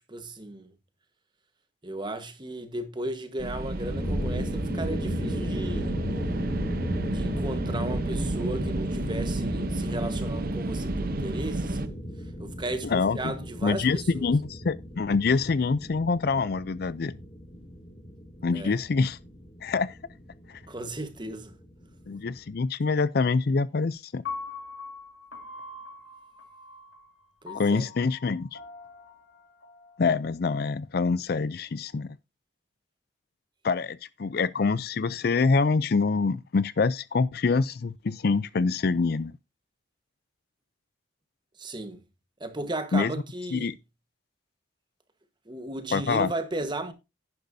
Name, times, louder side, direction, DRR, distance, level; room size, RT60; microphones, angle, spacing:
voice 1, 0.1-0.7 1.8-6.0 7.0-12.0 12.4-14.3 18.5-18.8 20.7-21.5 27.4-27.9 41.6-42.0 42.4-43.7 45.5-46.9, right 2 dB, 25° right, 1.3 m, -35 dB
sound 1, 3.4-11.9, right 2 dB, 50° right, 0.8 m, -31 dB
sound 2, 3.8-22.6, equal, 30° left, 2.5 m, -36 dB
voice 2, 12.8-13.3 13.6-17.1 18.4-19.2 19.6-20.0 22.1-24.2 27.5-28.6 30.0-32.1 33.6-39.3 42.9-43.1 43.5-43.7 45.9-46.3, left 4 dB, 55° left, 0.4 m, -25 dB
Piano, 24.2-30.4, left 4 dB, 90° left, 2.2 m, -42 dB
11.0 x 10.5 x 2.7 m
head